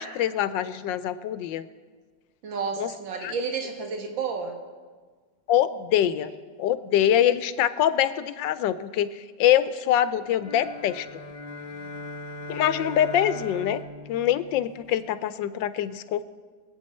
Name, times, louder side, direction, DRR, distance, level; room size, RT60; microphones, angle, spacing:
voice 1, 0.0-1.6 2.8-2.9 3.2-3.3 5.5-6.3 6.6-11.1 12.5-13.8 14.1-16.2, left 11 dB, 85° left, 13 dB, 1.3 m, -24 dB
voice 2, 2.4-4.6, right 5 dB, 85° right, 3 dB, 2.1 m, -31 dB
sound 1, 10.4-15.1, left 1 dB, 40° left, 0.5 m, -39 dB
23.5 x 8.6 x 4.3 m, 1.5 s
omnidirectional pair, 2.0 m